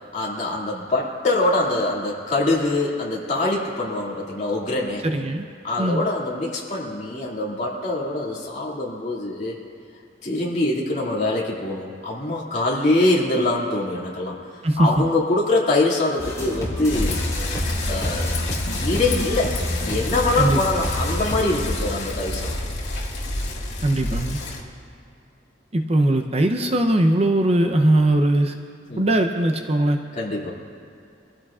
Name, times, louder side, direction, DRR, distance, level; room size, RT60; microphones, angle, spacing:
voice 1, 0.1-5.1 5.6-9.6 10.2-14.4 14.8-17.2 17.9-18.3 18.7-19.5 19.8-22.5 28.9-29.1 30.2-30.5, left 2 dB, 40° left, -4 dB, 2.4 m, -24 dB
voice 2, 5.0-5.4 5.8-6.1 14.6-15.0 20.4-20.6 23.8-24.4 25.7-28.6 29.0-30.0, right 1 dB, 35° right, 4 dB, 0.7 m, -20 dB
sound 1, 16.2-21.5, left 1 dB, 20° left, 3.6 m, -30 dB
Bicycle, 16.9-24.6, left 1 dB, 60° left, 2.1 m, -28 dB
24.0 x 15.5 x 2.5 m, 2.5 s
head